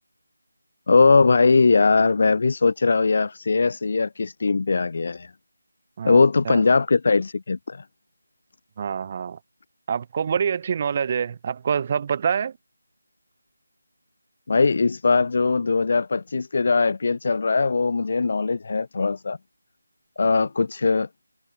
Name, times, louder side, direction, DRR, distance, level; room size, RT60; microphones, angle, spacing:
voice 1, 0.9-5.3 6.0-7.8 14.5-19.4 20.2-21.1, left 4 dB, 45° left, 1.7 m, -20 dB
voice 2, 6.0-6.6 8.8-9.4 9.9-12.5, right 7 dB, 25° right, 2.4 m, -26 dB
figure-of-eight pair, 170°, 0 cm